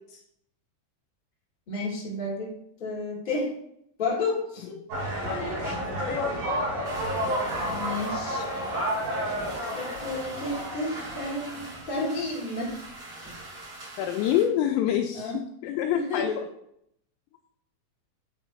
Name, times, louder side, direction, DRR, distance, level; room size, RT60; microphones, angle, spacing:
voice 1, 1.7-2.5 2.8-3.5 4.0-4.7 7.7-8.5 9.7-12.7 15.1-15.4 15.9-16.3, left 2 dB, 15° left, -5 dB, 1.7 m, -31 dB
sound 1, 4.9-11.7, equal, 85° right, 4.9 m, -31 dB
voice 2, 5.3-6.5 14.0-16.4, left 10 dB, 90° left, 5 dB, 2.5 m, -28 dB
sound 2, 6.8-14.4, right 2 dB, 40° right, 2.3 m, -42 dB
9.5 x 4.6 x 3.1 m, 0.75 s
omnidirectional pair, 5.6 m